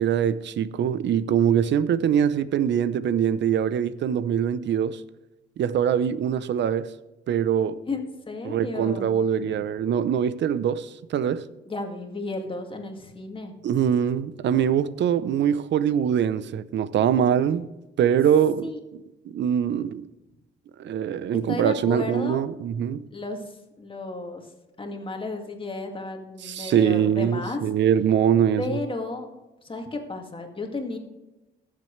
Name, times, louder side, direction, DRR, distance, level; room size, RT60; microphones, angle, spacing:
voice 1, 0.0-5.0 5.6-6.9 7.3-7.8 8.4-11.5 13.6-17.7 18.0-18.7 19.3-20.1 20.8-23.0 26.4-28.8, right 8 dB, 65° right, 0.7 m, -23 dB
voice 2, 7.9-9.1 9.4-9.5 11.7-13.5 18.6-18.8 21.5-22.6 23.1-24.5 24.8-27.6 28.6-29.3 29.6-31.0, left 2 dB, 25° left, 2.2 m, -33 dB
19.0 x 7.6 x 3.3 m
cardioid pair, 90°, 20 cm